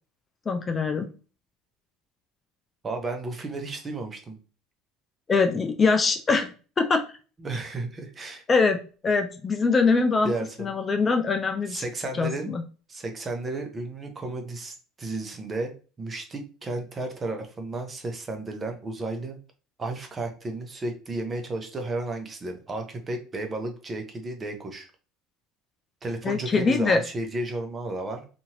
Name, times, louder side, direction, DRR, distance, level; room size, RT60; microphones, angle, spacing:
voice 1, 0.5-1.1 5.3-6.5 6.8-7.0 8.5-10.3 10.6-11.8 12.2-12.6 26.2-27.0, left 4 dB, 30° left, 6 dB, 0.4 m, -23 dB
voice 2, 2.8-4.4 7.4-8.4 10.2-10.7 11.7-12.5 12.9-15.7 16.0-19.4 19.8-24.9 26.0-28.3, right 2 dB, 25° right, 5 dB, 0.7 m, -33 dB
2.8 x 2.6 x 2.8 m, 0.36 s
supercardioid pair, 100°, 0 cm